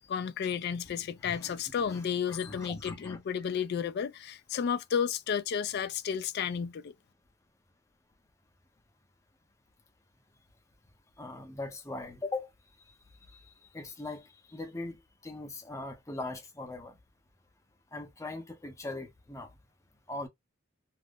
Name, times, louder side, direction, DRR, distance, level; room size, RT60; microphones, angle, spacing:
voice 1, 0.1-6.9, left 7 dB, 55° left, 0.3 m, -32 dB
voice 2, 1.2-3.2 11.2-12.5 13.7-16.9 17.9-19.5 20.1-20.3, left 2 dB, 15° left, 0.6 m, -40 dB
2.5 x 2.0 x 3.5 m
head